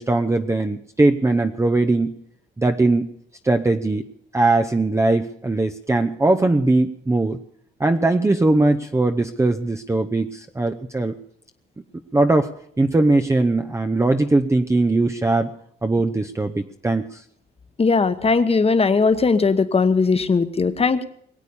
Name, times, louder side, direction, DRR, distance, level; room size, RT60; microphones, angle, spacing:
voice 1, 0.0-2.1 2.6-3.1 3.4-4.1 4.3-7.4 7.8-11.2 12.1-12.5 12.8-15.5 15.8-17.2, right 2 dB, 15° right, 5 dB, 0.8 m, -20 dB
voice 2, 17.8-21.1, left 4 dB, 30° left, 11 dB, 1.2 m, -18 dB
21.5 x 8.3 x 7.0 m, 0.66 s
cardioid pair, 90°, 20 cm